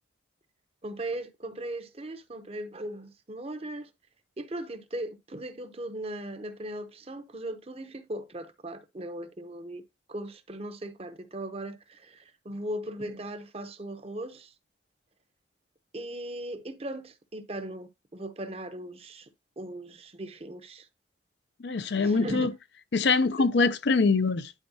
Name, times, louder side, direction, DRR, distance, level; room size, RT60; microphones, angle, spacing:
voice 1, 0.8-3.9 4.4-9.8 10.1-14.5 15.9-19.3 19.6-20.9 22.0-22.5 23.4-23.5, right 1 dB, 30° right, 0.8 m, -38 dB
voice 2, 21.6-22.5 22.9-24.5, left 4 dB, 65° left, 0.5 m, -24 dB
10.5 x 4.5 x 2.8 m
head